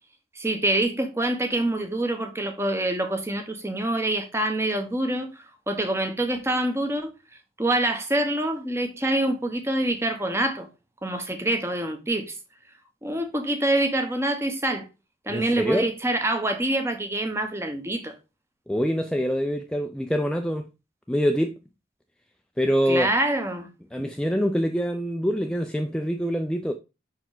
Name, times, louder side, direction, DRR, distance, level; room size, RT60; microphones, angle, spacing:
voice 1, 0.3-7.1 7.6-10.7 11.0-12.3 13.0-14.8 15.3-18.1 22.9-23.7, right 1 dB, 15° right, 0.9 m, -26 dB
voice 2, 15.3-15.9 18.7-20.7 21.1-21.6 22.6-23.1 23.9-26.7, equal, 5° left, 0.4 m, -25 dB
5.9 x 4.6 x 3.8 m
head